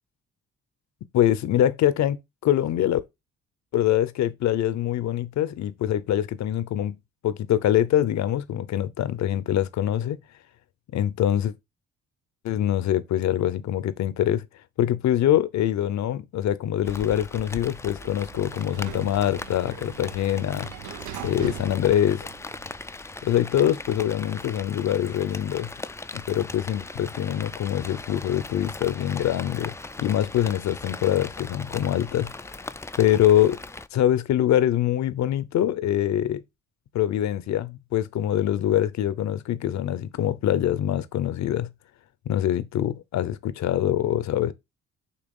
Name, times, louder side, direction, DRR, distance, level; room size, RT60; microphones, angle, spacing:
voice 1, 1.1-3.0 3.7-7.0 7.2-10.2 10.9-11.5 12.4-14.4 14.8-20.7 21.2-22.3 23.2-25.7 26.1-29.7 30.0-32.3 33.0-33.6 33.9-36.4 36.9-41.7 42.3-44.5, left 11 dB, 65° left, 0.7 m, -24 dB
Rain, 16.8-33.9, left 3 dB, 10° left, 0.4 m, -39 dB
Sliding door, 17.7-22.8, right 10 dB, 80° right, 0.7 m, -41 dB
6.9 x 2.9 x 5.3 m
cardioid pair, 90°, 30 cm